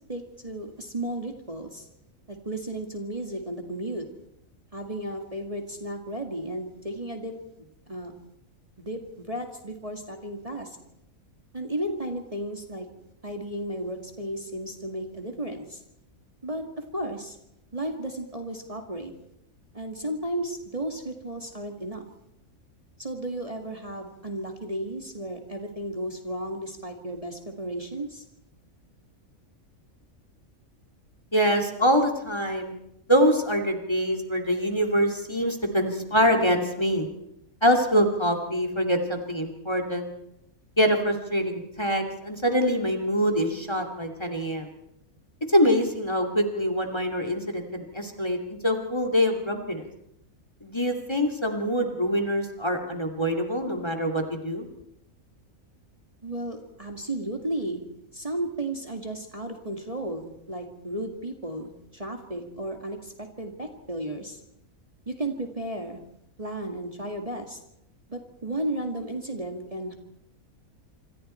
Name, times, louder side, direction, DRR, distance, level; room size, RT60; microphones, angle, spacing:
voice 1, 0.1-1.9 2.3-4.0 4.7-8.1 8.8-10.8 11.5-12.9 13.2-15.8 16.4-17.4 17.7-19.1 19.7-22.1 23.0-28.2 56.2-57.8 58.1-64.4 65.1-66.0 66.4-67.6 68.1-69.9, right 1 dB, 25° right, 3 dB, 2.2 m, -34 dB
voice 2, 31.3-32.7 33.1-37.1 37.6-40.1 40.8-44.7 45.5-49.9 50.6-54.7, equal, 20° left, 5 dB, 2.6 m, -24 dB
26.5 x 26.0 x 4.5 m, 0.80 s
omnidirectional pair, 1.5 m